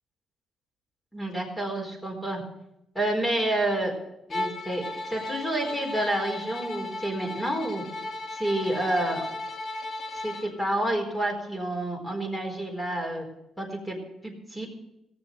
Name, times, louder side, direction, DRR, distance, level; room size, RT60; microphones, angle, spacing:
voice 1, 1.1-2.4 2.9-3.9 4.3-7.8 8.3-9.3 10.2-13.2 13.6-14.0 14.2-14.7, right 1 dB, 10° left, 1 dB, 4.3 m, -29 dB
Bowed string instrument, 4.3-10.5, left 2 dB, 45° left, 1.9 m, -35 dB
17.5 x 7.0 x 6.5 m, 0.85 s
cardioid pair, 90°, 0 cm